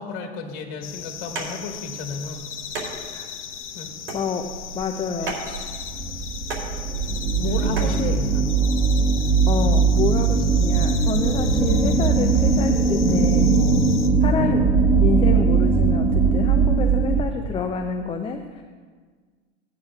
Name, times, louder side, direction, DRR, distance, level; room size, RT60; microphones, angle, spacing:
voice 1, 0.0-2.4 3.7-3.9 5.1-5.4 7.4-8.5 14.4-14.6, left 4 dB, 50° left, 2 dB, 1.9 m, -33 dB
sound 1, 0.8-14.1, left 8 dB, 90° left, 0.9 m, -37 dB
sound 2, 1.2-8.0, right 3 dB, 75° right, 3.3 m, -36 dB
voice 2, 4.1-5.7 7.8-8.1 9.5-13.9 14.2-14.7 15.0-18.6, left 5 dB, 15° left, 4 dB, 0.6 m, -28 dB
sound 3, 5.6-17.2, right 5 dB, 5° right, 1.3 m, -20 dB
16.5 x 9.1 x 2.5 m, 1.5 s
hypercardioid pair, 110°, 35 cm